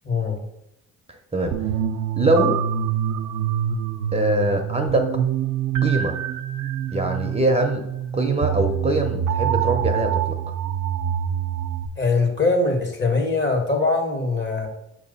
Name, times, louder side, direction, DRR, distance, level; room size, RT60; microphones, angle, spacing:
voice 1, 0.0-0.4 12.0-14.7, left 3 dB, 40° left, 2 dB, 1.8 m, -22 dB
voice 2, 1.1-1.6 2.2-2.6 4.1-5.1 5.8-6.2 6.9-7.8 8.1-10.4, right 1 dB, 20° right, 4 dB, 0.7 m, -23 dB
sound 1, 1.5-11.9, right 9 dB, 80° right, 0.5 m, -25 dB
6.1 x 3.0 x 5.5 m, 0.80 s
cardioid pair, 90°, 30 cm